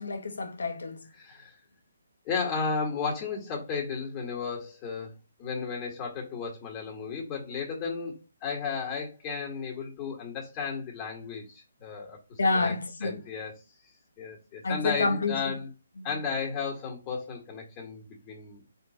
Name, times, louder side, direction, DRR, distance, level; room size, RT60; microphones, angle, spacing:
voice 1, 0.0-1.0 12.4-13.2 14.6-15.5 16.0-16.1, left 3 dB, 70° left, 1.2 m, -28 dB
voice 2, 1.2-1.5 2.3-5.1 5.4-8.1 8.4-12.7 13.0-13.5 14.2-15.7 16.0-18.6, left 5 dB, 25° left, 1.9 m, -34 dB
4.5 x 3.6 x 3.1 m
figure-of-eight pair, 140°, 0 cm